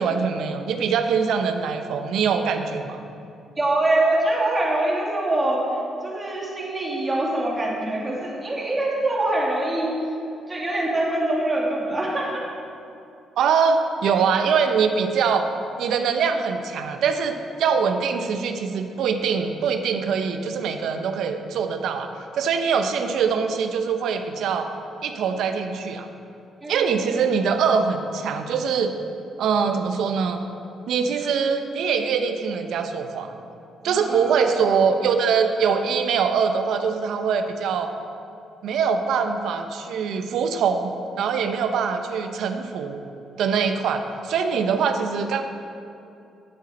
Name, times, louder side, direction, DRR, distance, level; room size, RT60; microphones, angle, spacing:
voice 1, 0.0-3.0 13.4-15.5 15.8-24.7 25.0-26.1 26.7-28.9 29.4-30.4 30.9-33.3 33.8-37.9 38.6-43.0 43.4-45.4, right 6 dB, 75° right, 7 dB, 0.7 m, -23 dB
voice 2, 3.6-5.7 6.0-10.0 10.5-12.5 26.6-27.0 33.8-34.5, right 1 dB, 25° right, -3 dB, 2.3 m, -24 dB
10.5 x 8.0 x 4.2 m, 2.6 s
cardioid pair, 90°, 0 cm